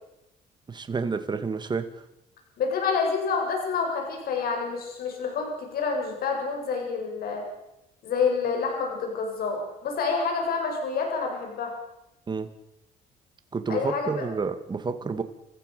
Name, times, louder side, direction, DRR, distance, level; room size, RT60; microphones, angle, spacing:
voice 1, 0.7-1.9 12.3-12.5 13.5-15.2, right 4 dB, 25° right, 9 dB, 2.2 m, -29 dB
voice 2, 2.6-7.4 8.0-11.7 13.7-14.3, left 5 dB, 65° left, 2 dB, 7.8 m, -28 dB
29.5 x 15.0 x 6.9 m, 0.88 s
cardioid pair, 110°, 17 cm